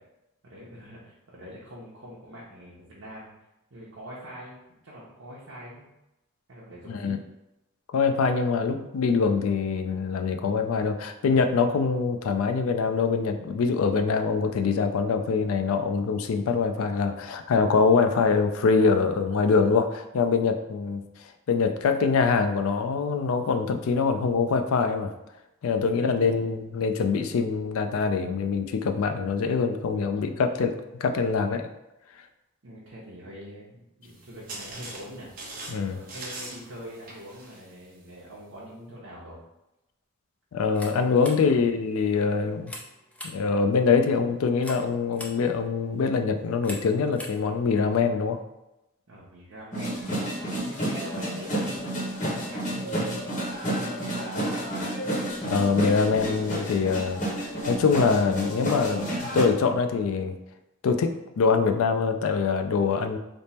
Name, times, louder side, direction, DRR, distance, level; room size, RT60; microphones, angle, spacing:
voice 1, 0.4-3.3 3.7-4.6 4.8-5.9 6.5-7.2 26.0-26.4 29.9-30.3 32.6-35.3 35.9-39.4 41.3-41.6 49.1-53.5 53.7-54.7, equal, 70° right, -6 dB, 0.7 m, -44 dB
voice 2, 7.9-21.0 21.5-25.1 25.6-30.7 31.0-31.7 35.7-36.0 40.5-42.7 43.3-48.4 55.5-60.3 60.8-63.2, left 5 dB, 85° left, 7 dB, 0.4 m, -24 dB
sound 1, 34.0-38.4, right 2 dB, 40° right, 0.6 m, -42 dB
sound 2, 40.6-48.0, left 1 dB, 5° left, 0.3 m, -45 dB
sound 3, 49.7-59.4, right 1 dB, 35° left, 0.8 m, -30 dB
3.4 x 2.0 x 4.1 m, 0.92 s
head